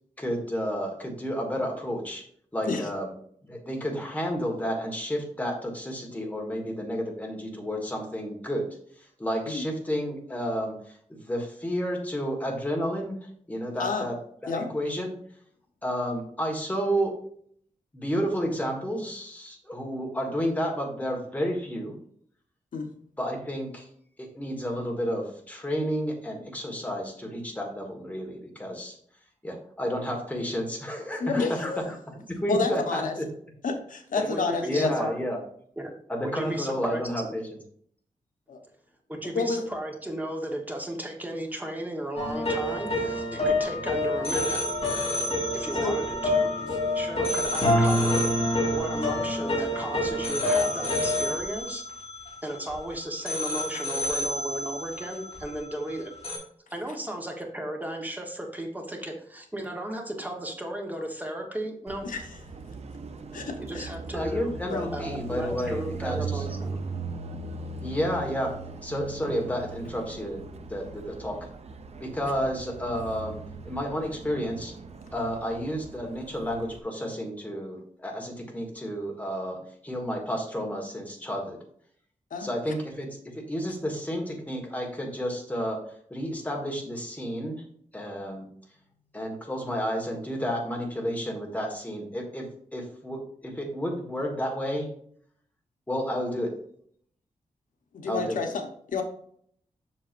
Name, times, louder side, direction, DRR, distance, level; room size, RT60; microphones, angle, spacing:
voice 1, 0.2-2.2 2.5-3.1 3.4-8.7 9.0-14.2 14.4-15.1 15.8-17.2 17.9-21.9 23.2-23.9 24.2-29.0 29.4-33.3 34.7-35.4 36.1-37.5 64.1-66.5 67.8-68.5 68.8-70.4 70.7-71.4 72.0-73.4 73.6-74.7 75.1-81.6 82.4-85.8 86.1-87.6 87.9-88.5 89.1-94.9 95.9-96.5 98.0-98.4, equal, 10° left, 1 dB, 1.5 m, -31 dB
voice 2, 31.2-31.8 32.5-33.2 33.6-34.9 38.5-38.6 39.3-39.6 45.8-45.9 53.7-53.8 62.0-62.2 63.3-63.9 64.7-64.8 82.3-82.5 97.9-99.0, left 4 dB, 75° left, 5 dB, 1.0 m, -29 dB
voice 3, 34.2-35.2 35.8-35.9 36.2-37.0 39.1-44.6 45.5-46.5 46.9-48.3 48.7-51.8 52.4-56.1 56.7-62.1 63.6-64.5 64.9-66.8, right 1 dB, 10° right, 2 dB, 1.1 m, -35 dB
sound 1, 42.2-52.8 53.3-55.9 56.2-56.4, left 1 dB, 45° left, 2.6 m, -27 dB
Car passing by, 61.9-76.8, right 3 dB, 50° right, 0.6 m, -39 dB
7.5 x 6.0 x 2.5 m, 0.63 s
wide cardioid pair, 145°, 14 cm